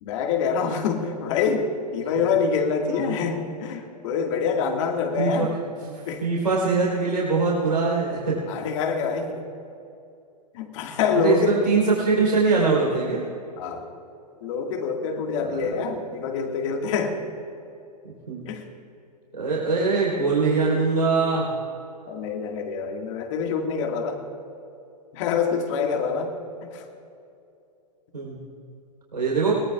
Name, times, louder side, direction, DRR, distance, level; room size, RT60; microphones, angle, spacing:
voice 1, 0.0-5.5 6.1-6.2 8.5-9.4 10.5-11.6 13.6-13.8 14.4-17.2 18.5-18.6 22.1-24.2 25.1-26.3 26.6-26.8, left 5 dB, 50° left, 3 dB, 1.9 m, -26 dB
voice 2, 2.8-3.1 5.2-5.5 5.9-8.4 11.1-13.2 15.4-15.8 18.3-18.4 19.3-21.5 28.1-28.4 29.1-29.5, right 4 dB, 85° right, -5 dB, 3.9 m, -23 dB
21.5 x 18.5 x 2.4 m, 2.7 s
figure-of-eight pair, 110°, 21 cm